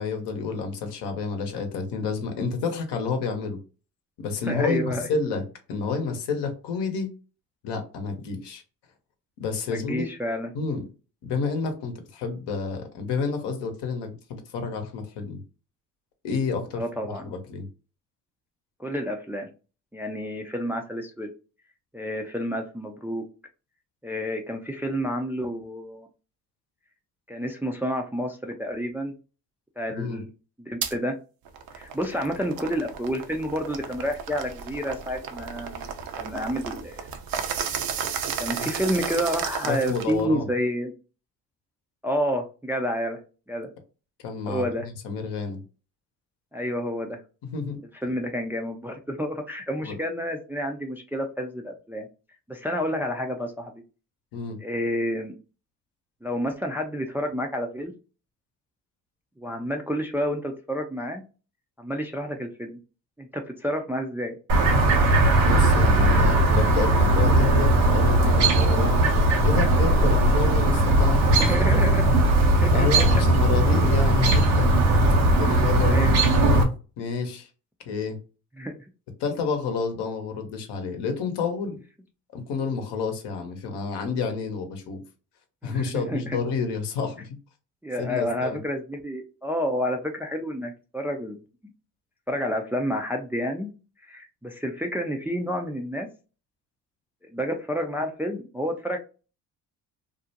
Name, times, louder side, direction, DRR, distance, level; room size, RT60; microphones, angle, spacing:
voice 1, 0.0-3.6 4.2-5.4 5.7-7.1 7.6-8.6 9.4-10.1 10.5-10.8 11.2-15.4 16.2-17.7 30.0-30.2 39.6-40.5 44.2-45.6 47.5-47.8 49.8-50.0 54.3-54.6 65.4-69.0 69.4-71.9 72.7-74.8 75.4-76.7 77.0-77.5 77.9-78.2 79.2-81.8 82.3-85.0 85.6-87.4 88.0-88.6, left 5 dB, 65° left, 5 dB, 0.9 m, -29 dB
voice 2, 4.5-5.1 9.7-10.5 16.8-17.2 18.8-19.5 19.9-21.3 21.9-23.2 24.0-26.1 27.3-29.1 29.8-30.3 30.6-31.1 31.7-35.9 36.2-37.1 38.4-40.9 42.0-43.2 43.5-43.7 44.5-44.9 46.5-47.2 48.0-52.1 52.5-53.7 54.6-55.3 56.2-57.9 59.4-61.2 61.8-62.8 63.2-64.4 71.4-72.0 72.5-73.1 75.9-76.1 78.6-78.8 85.6-86.4 87.8-91.4 92.3-93.7 94.0-96.1 97.3-99.0, equal, 5° right, 3 dB, 0.4 m, -29 dB
sound 1, 30.8-30.9 31.4-40.2, right 7 dB, 55° right, 0.6 m, -33 dB
Chirp tweet, 64.5-76.6, right 1 dB, 80° right, 0.8 m, -19 dB
2.5 x 2.1 x 2.7 m, 0.34 s
hypercardioid pair, 55°, 43 cm